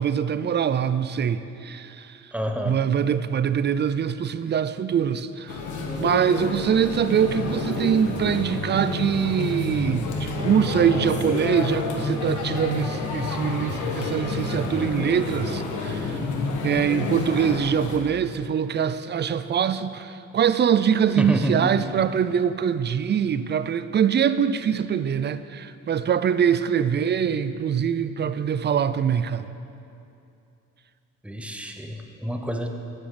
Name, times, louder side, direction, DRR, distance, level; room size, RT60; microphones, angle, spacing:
voice 1, 0.0-2.3 2.6-5.6 6.0-16.2 16.6-29.5, right 8 dB, 35° right, 13 dB, 0.5 m, -23 dB
voice 2, 2.3-2.8 21.2-21.7 31.2-32.7, equal, 5° right, 4 dB, 0.9 m, -28 dB
sound 1, 5.5-18.0, left 3 dB, 75° left, 1.5 m, -29 dB
10.5 x 7.9 x 5.8 m, 2.7 s
cardioid pair, 90°, 30 cm